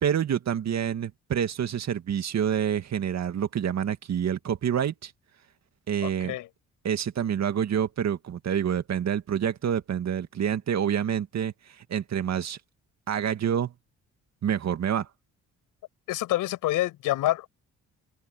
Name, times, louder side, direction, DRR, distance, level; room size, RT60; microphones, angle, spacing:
voice 1, 0.0-5.1 5.9-6.4 6.8-12.6 13.1-13.7 14.4-15.1, right 9 dB, 60° right, 2.1 m, -27 dB
voice 2, 6.0-6.5 16.1-17.5, left 16 dB, 85° left, 7.7 m, -27 dB
cardioid pair, 75°, 31 cm